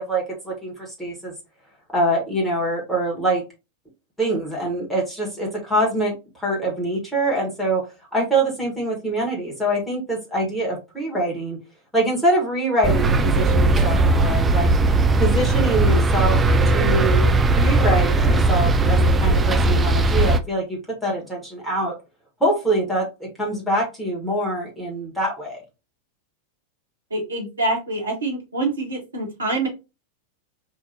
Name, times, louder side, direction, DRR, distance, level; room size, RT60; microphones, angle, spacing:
voice 1, 0.0-1.3 1.9-3.4 4.2-7.8 8.1-11.6 11.9-14.7 15.2-16.4 16.6-17.3 17.5-21.9 22.4-25.6, right 1 dB, ahead, -3 dB, 1.5 m, -24 dB
sound 1, 12.8-20.4, right 2 dB, 15° right, 0.4 m, -18 dB
voice 2, 27.1-29.7, right 2 dB, 75° right, 0 dB, 1.6 m, -25 dB
4.8 x 2.6 x 2.9 m, 0.27 s
figure-of-eight pair, 90°, 0 cm